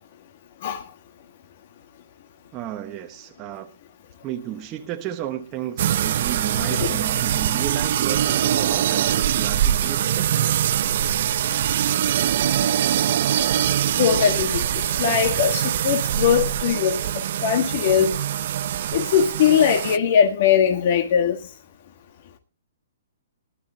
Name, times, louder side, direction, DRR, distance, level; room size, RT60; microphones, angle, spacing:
voice 1, 2.5-3.7 4.2-10.3, right 12 dB, 20° right, 1.1 m, -33 dB
sound 1, 5.8-20.0, right 10 dB, 50° right, 0.7 m, -23 dB
voice 2, 6.6-7.0 14.0-14.6 15.0-17.0 17.4-18.1 18.9-21.4, left 8 dB, 45° left, 1.7 m, -20 dB
19.5 x 12.0 x 2.9 m
hypercardioid pair, 160°, 0 cm